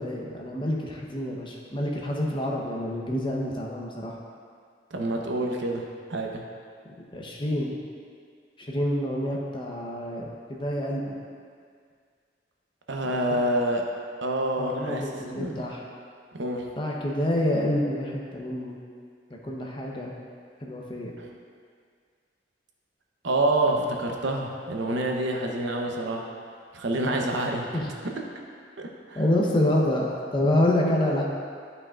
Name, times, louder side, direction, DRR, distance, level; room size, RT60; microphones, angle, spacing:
voice 1, 0.0-4.1 7.1-7.7 8.6-11.2 13.0-13.4 14.6-15.8 16.8-18.8 19.4-20.1 20.6-21.1 27.7-27.9 29.1-31.2, left 1 dB, 25° left, -2 dB, 0.8 m, -27 dB
voice 2, 4.9-5.8 6.1-6.4 12.9-13.9 14.2-15.6 16.3-16.6 23.2-26.3 26.7-27.8 28.8-29.2, right 1 dB, 85° right, 1 dB, 0.8 m, -27 dB
11.0 x 5.5 x 2.4 m, 2.1 s
head